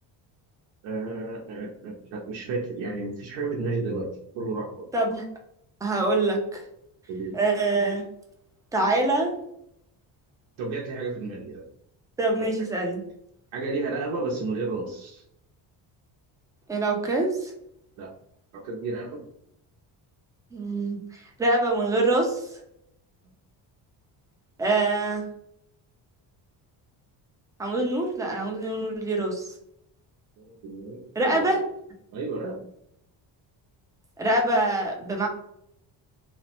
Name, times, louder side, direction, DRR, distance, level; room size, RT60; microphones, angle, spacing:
voice 1, 0.8-4.8 7.1-7.4 10.6-11.7 12.4-12.5 13.5-15.2 18.0-18.1 18.5-19.2 30.4-31.6 32.1-32.6, right 3 dB, 80° right, -3 dB, 0.8 m, -32 dB
voice 2, 4.9-5.2 5.8-6.6 7.3-8.1 8.7-9.3 12.2-13.0 16.7-17.5 20.5-21.0 21.4-22.5 24.6-25.3 27.6-29.5 31.2-31.6 34.2-35.3, right 2 dB, 10° right, 0 dB, 0.4 m, -24 dB
3.1 x 2.1 x 2.9 m, 0.76 s
cardioid pair, 140°, 46 cm